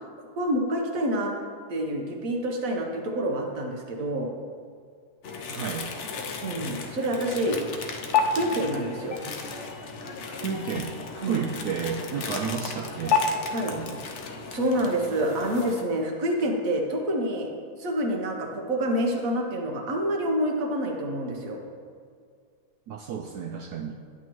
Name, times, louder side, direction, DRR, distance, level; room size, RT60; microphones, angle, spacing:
voice 1, 0.4-1.3 1.7-4.3 6.4-7.6 8.2-9.2 11.2-11.4 13.5-13.8 14.5-17.5 17.8-21.6, right 1 dB, 50° right, 2 dB, 1.2 m, -27 dB
sound 1, 5.2-15.8, left 5 dB, 80° left, 0.6 m, -32 dB
voice 2, 5.5-5.9 10.3-13.2 13.6-14.0 22.9-24.0, right 6 dB, 75° right, 2 dB, 0.9 m, -32 dB
10.5 x 8.6 x 3.1 m, 2.1 s
omnidirectional pair, 2.1 m